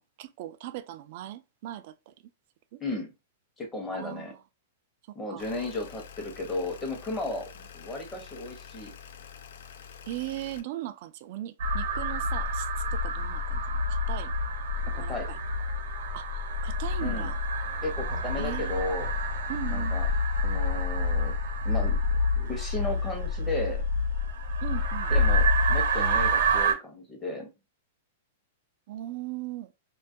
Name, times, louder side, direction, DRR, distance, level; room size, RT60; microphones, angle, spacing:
voice 1, 0.0-2.1 2.7-2.8 3.9-4.4 5.3-5.5 10.0-14.3 14.8-15.4 16.1-17.4 18.4-18.9 19.5-20.0 24.6-25.1 28.9-29.7, right 14 dB, 50° right, 0.3 m, -39 dB
voice 2, 3.6-4.3 5.1-8.9 14.9-15.3 17.0-17.3 17.8-19.1 19.7-20.1 20.4-21.4 21.6-22.0 22.3-23.8 25.1-27.5, left 2 dB, 15° left, 0.8 m, -34 dB
sound 1, 5.4-10.6, left 7 dB, 75° left, 0.3 m, -47 dB
sound 2, 11.6-26.7, left 1 dB, 75° right, 0.8 m, -27 dB
2.3 x 2.1 x 2.5 m
hypercardioid pair, 140°, 0 cm